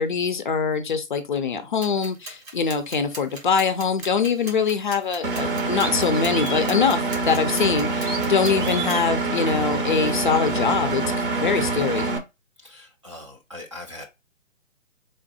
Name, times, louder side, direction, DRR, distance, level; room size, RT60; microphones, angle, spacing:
voice 1, 0.0-11.0 11.4-12.1, left 6 dB, 40° left, 0.5 m, -23 dB
sound 1, 1.8-9.0, right 2 dB, 85° right, 1.6 m, -41 dB
sound 2, 5.0-5.1 5.8-6.7 7.9-9.1, right 3 dB, 65° right, 1.2 m, -34 dB
Engine, 5.2-12.2, right 3 dB, 40° right, 0.8 m, -25 dB
voice 2, 12.6-14.1, left 1 dB, 25° right, 0.4 m, -41 dB
3.5 x 2.1 x 4.0 m
figure-of-eight pair, 135°, 41 cm